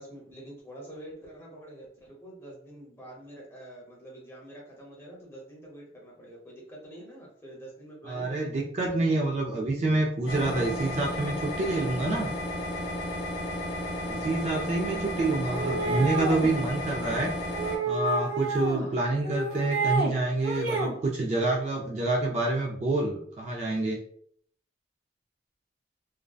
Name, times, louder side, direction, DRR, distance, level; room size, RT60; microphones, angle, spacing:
voice 1, 0.0-8.7 15.4-16.1 18.8-19.1, right 1 dB, 15° left, -3 dB, 0.7 m, -46 dB
voice 2, 8.1-12.3 14.1-17.3 17.9-24.0, right 2 dB, 35° right, -1 dB, 0.3 m, -27 dB
sound 1, 10.3-17.8, left 1 dB, 70° left, 0.6 m, -33 dB
sound 2, 15.5-16.5 17.5-18.9 19.2-20.1 20.4-21.0, right 3 dB, 80° right, 0.6 m, -29 dB
2.6 x 2.1 x 2.3 m, 0.62 s
head